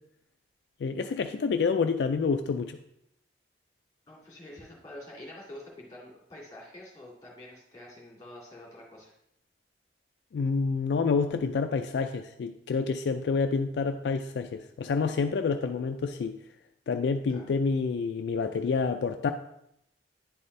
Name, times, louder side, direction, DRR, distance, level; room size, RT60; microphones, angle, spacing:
voice 1, 0.8-2.8 10.3-16.4 16.9-19.3, left 5 dB, 70° left, 6 dB, 0.3 m, -28 dB
voice 2, 4.1-9.1 17.3-17.5, left 1 dB, 20° left, -3 dB, 2.2 m, -47 dB
9.8 x 4.1 x 3.2 m, 0.77 s
head